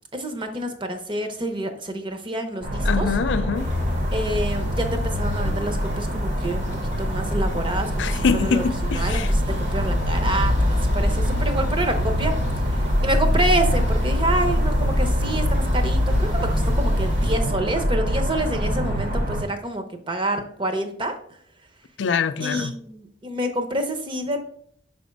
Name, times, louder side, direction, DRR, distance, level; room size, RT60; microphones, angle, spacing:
voice 1, 0.1-3.1 4.1-8.6 8.9-12.3 12.7-21.1 22.4-24.4, right 1 dB, 30° right, 0.8 m, -28 dB
sound 1, 2.6-19.4, equal, 50° right, 1.4 m, -26 dB
voice 2, 2.8-3.7 8.0-9.3 22.0-22.7, left 5 dB, 85° left, 0.4 m, -24 dB
sound 2, 3.5-17.4, left 1 dB, 85° right, 2.2 m, -25 dB
5.9 x 3.5 x 5.3 m
head